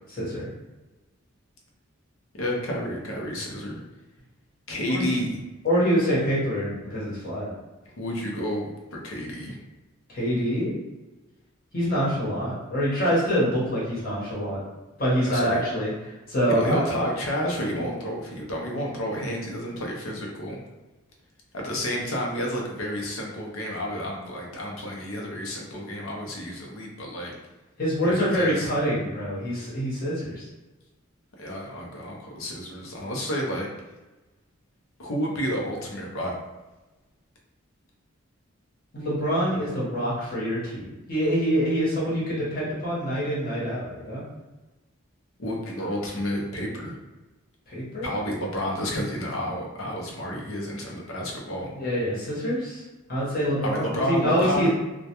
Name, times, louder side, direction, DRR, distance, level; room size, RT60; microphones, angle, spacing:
voice 1, 0.2-0.5 4.9-5.1 5.6-7.5 10.1-10.7 11.7-14.6 15.0-15.9 16.3-17.0 27.8-30.5 38.9-44.2 47.7-48.1 51.7-52.8 53.1-54.7, equal, 45° left, -7 dB, 0.9 m, -25 dB
voice 2, 2.3-3.8 4.7-5.4 8.0-9.6 15.3-15.6 16.5-20.6 21.5-27.3 28.0-28.7 31.4-33.7 35.0-36.3 45.4-46.9 48.0-51.7 53.6-54.7, equal, 80° left, -1 dB, 0.6 m, -30 dB
2.2 x 2.1 x 2.8 m, 1.1 s
head